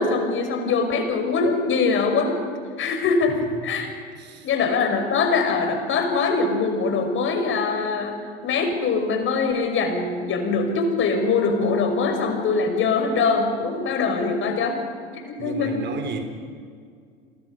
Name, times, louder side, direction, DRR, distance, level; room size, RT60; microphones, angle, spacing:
voice 1, 0.0-2.3 2.8-3.4 3.6-3.9 4.4-8.2 8.4-14.8 15.1-15.8, left 4 dB, 40° left, 5 dB, 5.6 m, -22 dB
voice 2, 4.1-4.5 15.4-16.2, right 4 dB, 35° right, 6 dB, 4.3 m, -33 dB
29.5 x 23.5 x 5.3 m, 2.2 s
figure-of-eight pair, 75°, 31 cm